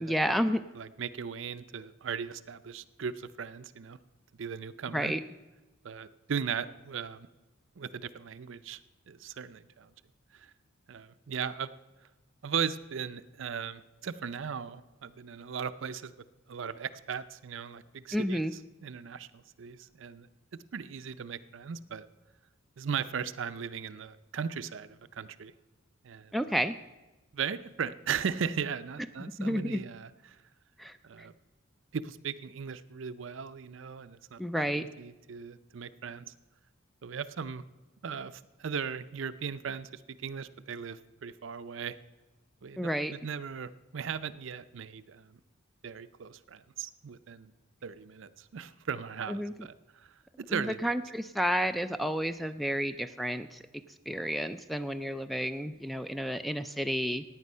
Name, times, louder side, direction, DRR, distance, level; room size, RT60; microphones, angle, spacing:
voice 1, 0.0-0.6 4.9-5.2 18.1-18.5 26.3-26.8 29.2-29.8 30.8-31.3 34.4-34.8 42.8-43.1 49.3-49.5 50.5-53.6 54.1-57.2, equal, ahead, 11 dB, 0.3 m, -31 dB
voice 2, 0.7-4.0 4.4-5.1 5.8-7.3 7.8-8.8 9.1-9.9 10.3-10.5 10.9-11.7 12.4-16.1 16.5-18.4 18.8-20.3 20.7-22.1 22.8-25.5 26.0-26.3 27.3-30.4 31.0-31.3 31.9-36.3 37.0-37.6 38.0-42.0 42.6-45.4 45.8-47.5 47.8-50.8, right 6 dB, 65° right, 14 dB, 0.5 m, -37 dB
15.5 x 9.2 x 5.5 m, 1.1 s
head